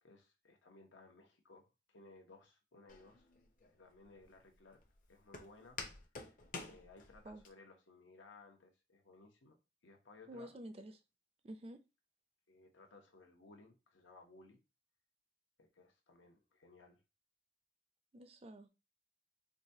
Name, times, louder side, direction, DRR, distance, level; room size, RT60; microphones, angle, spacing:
voice 1, 0.0-3.3 3.7-4.8 5.1-6.4 6.7-10.6 12.5-14.6 15.6-17.0, left 3 dB, 80° left, 0.9 m, -61 dB
Walk footsteps, 2.9-7.5, left 4 dB, 45° left, 0.6 m, -50 dB
voice 2, 10.3-11.0 11.4-11.8 18.1-18.7, right 1 dB, 30° right, 0.4 m, -50 dB
4.8 x 2.3 x 2.7 m
head